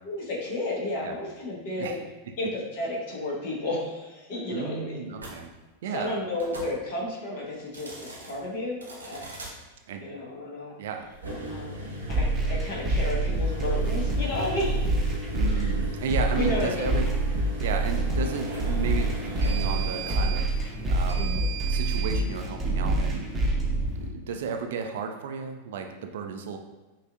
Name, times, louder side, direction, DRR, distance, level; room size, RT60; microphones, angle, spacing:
voice 1, 0.0-2.0 2.4-5.0 5.9-9.3 10.0-10.7 11.5-14.8 15.5-15.7 16.3-17.0 21.1-21.5 24.3-24.4, left 2 dB, 50° left, -4 dB, 1.0 m, -32 dB
voice 2, 4.5-5.5 5.8-6.2 9.9-10.1 10.8-11.1 15.3-17.1 17.6-21.4 21.7-23.4 23.7-26.6, right 6 dB, 55° right, 5 dB, 0.3 m, -33 dB
sound 1, 5.2-5.3 6.3-6.7 7.6-8.3 8.8-9.5 11.1-22.2, right 2 dB, 75° right, 0.8 m, -37 dB
sound 2, 12.1-24.1, right 2 dB, 10° right, 0.7 m, -27 dB
5.6 x 2.4 x 2.3 m, 1.2 s
figure-of-eight pair, 90°, 0 cm